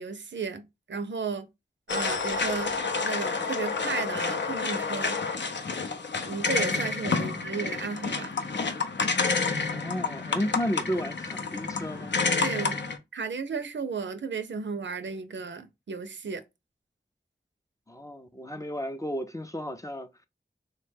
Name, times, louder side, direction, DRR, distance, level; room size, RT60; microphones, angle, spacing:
voice 1, 0.0-1.5 1.9-2.7 3.0-5.2 6.2-8.3 12.4-12.8 13.1-16.4, right 5 dB, 75° right, 0.5 m, -34 dB
sound 1, 1.9-13.0, left 4 dB, 70° left, 0.5 m, -29 dB
voice 2, 9.7-12.2 12.6-12.7 17.9-20.3, equal, 15° left, 0.4 m, -33 dB
3.3 x 2.1 x 3.2 m
wide cardioid pair, 50°, 19 cm